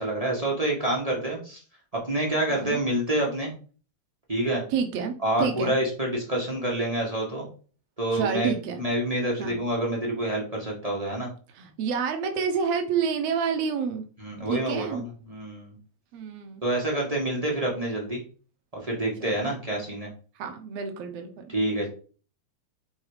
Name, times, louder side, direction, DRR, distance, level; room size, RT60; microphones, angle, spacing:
voice 1, 0.0-1.6 2.0-3.5 4.3-4.6 5.2-7.5 8.0-11.3 14.2-15.8 16.6-18.2 18.8-20.1 21.5-21.9, right 1 dB, 25° right, -2 dB, 0.8 m, -27 dB
voice 2, 4.7-5.8 8.1-8.9 9.4-9.6 11.6-14.1 14.5-15.0 16.1-16.6 19.2-19.6 20.4-21.5, right 6 dB, 65° right, 5 dB, 1.9 m, -29 dB
5.6 x 4.1 x 5.0 m, 0.39 s
omnidirectional pair, 3.3 m